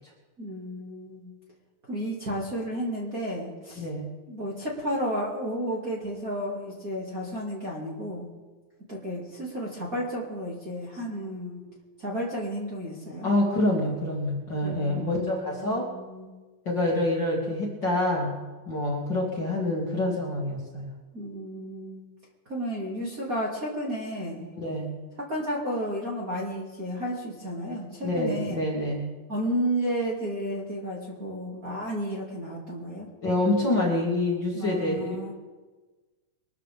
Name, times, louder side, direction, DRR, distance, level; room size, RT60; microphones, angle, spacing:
voice 1, 0.4-1.3 1.9-3.8 4.3-8.3 8.9-11.6 12.0-13.3 14.6-16.3 21.1-22.0 22.5-24.5 25.2-28.6 29.3-33.1 34.5-35.3, equal, 25° right, -5 dB, 2.4 m, -32 dB
voice 2, 3.8-4.1 13.2-15.9 16.7-18.4 18.7-20.9 24.6-25.0 28.0-29.1 33.2-35.3, left 1 dB, 35° left, -3 dB, 2.5 m, -27 dB
23.5 x 13.5 x 3.6 m, 1.3 s
omnidirectional pair, 4.0 m